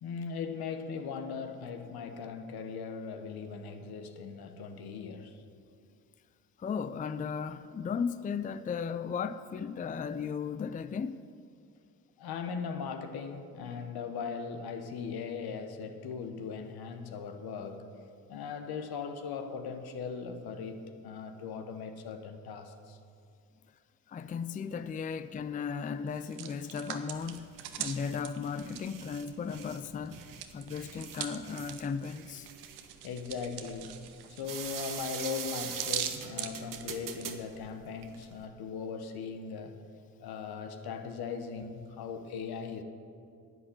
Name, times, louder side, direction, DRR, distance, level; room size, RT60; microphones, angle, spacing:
voice 1, 0.0-5.4 12.2-17.9 18.3-23.0 33.0-39.8 40.2-42.8, left 6 dB, 70° left, 1.3 m, -39 dB
voice 2, 6.6-11.2 24.1-30.2 30.5-32.5, left 6 dB, 20° left, 0.4 m, -36 dB
Hands, 26.1-29.8 30.1-37.3, right 10 dB, 80° right, 1.0 m, -41 dB
sound 1, 27.1-38.4, right 7 dB, 55° right, 1.3 m, -44 dB
11.0 x 8.5 x 7.5 m
supercardioid pair, 70°, 39 cm